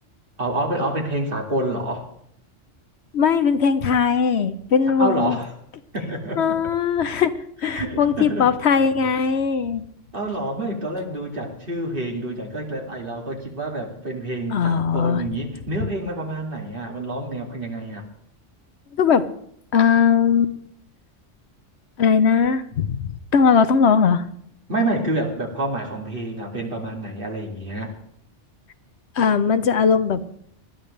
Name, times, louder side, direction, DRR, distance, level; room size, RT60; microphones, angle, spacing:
voice 1, 0.4-2.1 5.0-5.5 5.9-6.6 7.6-8.5 10.1-18.1 24.7-27.9, right 1 dB, 50° right, 1 dB, 2.6 m, -28 dB
voice 2, 3.1-5.4 6.4-7.3 7.6-9.8 14.5-15.2 19.0-19.3 19.7-20.5 22.0-23.0 23.3-24.2 29.2-30.2, left 6 dB, 65° left, 11 dB, 1.0 m, -19 dB
20.0 x 13.0 x 3.3 m, 0.68 s
omnidirectional pair, 1.2 m